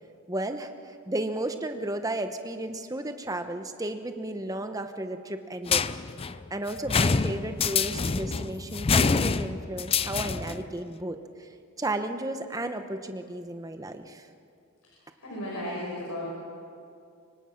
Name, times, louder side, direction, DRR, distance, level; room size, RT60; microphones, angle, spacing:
voice 1, 0.3-0.7 1.1-5.8 6.5-11.5 11.8-14.3, right 1 dB, 15° right, 7 dB, 1.0 m, -33 dB
sound 1, 5.7-10.6, left 5 dB, 25° left, 0.4 m, -26 dB
voice 2, 15.2-16.3, left 1 dB, 75° left, -4 dB, 5.9 m, -34 dB
25.5 x 23.5 x 5.9 m, 2.4 s
head